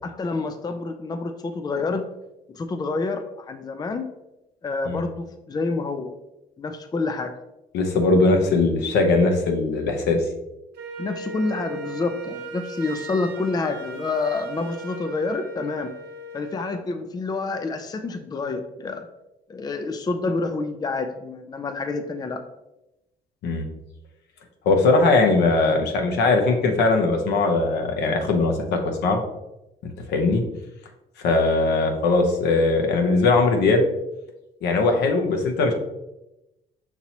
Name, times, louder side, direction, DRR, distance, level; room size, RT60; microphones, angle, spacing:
voice 1, 0.0-2.0 2.5-4.1 4.6-6.1 6.6-7.4 11.0-15.9 16.3-19.1 19.5-22.4, left 3 dB, 25° left, 8 dB, 0.4 m, -28 dB
voice 2, 7.7-10.2 23.4-23.6 24.7-29.2 29.8-30.4 31.2-33.9 34.6-35.7, left 3 dB, 80° left, 4 dB, 0.8 m, -20 dB
Wind instrument woodwind instrument, 10.7-16.8, right 3 dB, 70° right, 0.8 m, -37 dB
5.9 x 2.9 x 2.8 m, 0.93 s
supercardioid pair, 75°, 17 cm